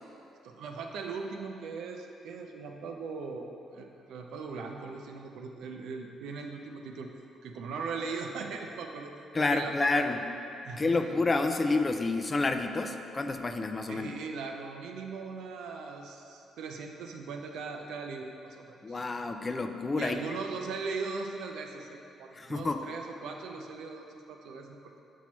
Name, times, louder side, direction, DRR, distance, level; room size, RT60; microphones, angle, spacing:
voice 1, 0.4-7.1 7.4-10.1 10.6-11.2 13.9-19.0 19.9-25.0, right 4 dB, 85° right, 3 dB, 0.5 m, -39 dB
voice 2, 9.3-10.2 10.7-14.1 18.8-20.2 22.3-22.8, left 3 dB, 30° left, 6 dB, 0.4 m, -29 dB
7.1 x 4.5 x 3.0 m, 2.7 s
cardioid pair, 90°, 0 cm